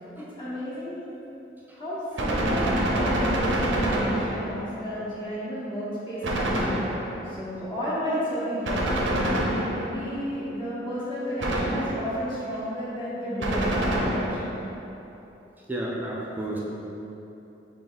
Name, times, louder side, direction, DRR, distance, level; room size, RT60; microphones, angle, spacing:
voice 1, 0.2-1.0 1.7-6.8 7.2-9.1 9.7-14.5, equal, 25° left, -11 dB, 1.1 m, -32 dB
Gunshot gunfire, 2.2-4.7 6.2-7.3 8.6-10.1 11.4-12.2 13.4-14.6, right 1 dB, 85° right, 0.6 m, -26 dB
voice 2, 15.7-16.6, right 1 dB, 10° right, -4 dB, 0.5 m, -31 dB
4.4 x 3.0 x 3.9 m, 3.0 s
head